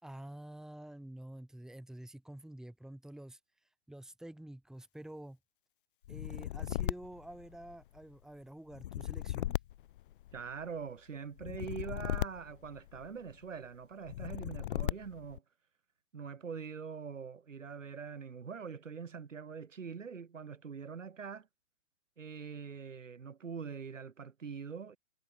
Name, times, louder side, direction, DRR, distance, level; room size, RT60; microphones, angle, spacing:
voice 1, 0.0-3.4 3.9-5.4 6.1-9.6, right 1 dB, ahead, 3.3 m, -48 dB
sound 1, 6.0-8.0 8.7-10.7 11.4-13.3 14.0-15.4, left 13 dB, 45° left, 0.5 m, -37 dB
voice 2, 10.3-15.4 16.1-21.5 22.2-25.0, right 6 dB, 80° right, 4.6 m, -43 dB
hypercardioid pair, 135°, 37 cm